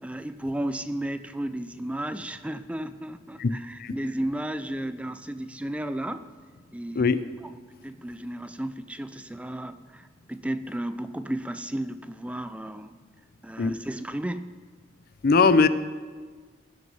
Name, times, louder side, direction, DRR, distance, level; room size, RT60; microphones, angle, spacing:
voice 1, 0.0-6.3 6.7-7.1 7.8-13.0 13.4-14.5, right 1 dB, 5° right, 12 dB, 0.3 m, -33 dB
voice 2, 15.2-15.7, left 4 dB, 55° left, 13 dB, 0.5 m, -20 dB
18.0 x 6.2 x 5.5 m, 1.5 s
head